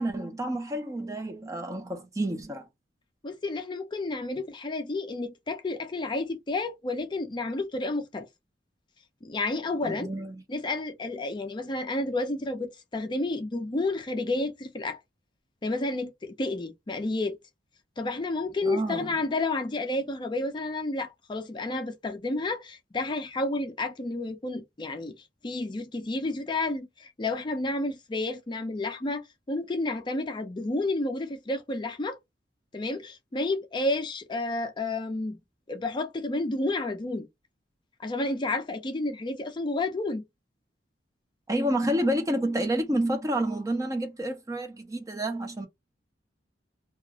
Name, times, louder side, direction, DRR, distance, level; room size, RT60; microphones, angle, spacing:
voice 1, 0.0-2.6 9.8-10.3 18.6-19.2 41.5-45.7, right 1 dB, 20° right, 0.6 m, -29 dB
voice 2, 3.2-8.3 9.2-10.1 10.5-15.0 15.6-17.4 18.0-25.1 25.4-32.2 32.7-35.4 35.7-37.3 38.0-40.2, left 2 dB, 25° left, 0.4 m, -31 dB
2.4 x 2.3 x 2.9 m
head